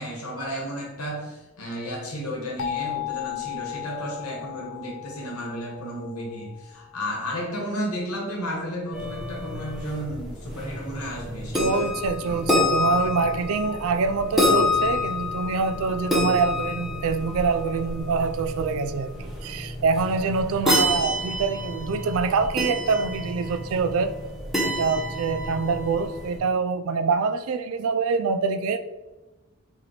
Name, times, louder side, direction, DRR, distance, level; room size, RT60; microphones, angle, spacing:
voice 1, 0.0-11.9 12.2-12.4 20.5-20.8, equal, 90° left, -1 dB, 1.2 m, -33 dB
sound 1, 2.6-7.3, left 13 dB, 65° left, 0.5 m, -35 dB
sound 2, 8.9-26.4, left 1 dB, ahead, 0.8 m, -28 dB
voice 2, 11.6-24.1 24.6-28.8, right 4 dB, 75° right, 9 dB, 0.3 m, -25 dB
3.2 x 3.0 x 3.9 m, 1.1 s
head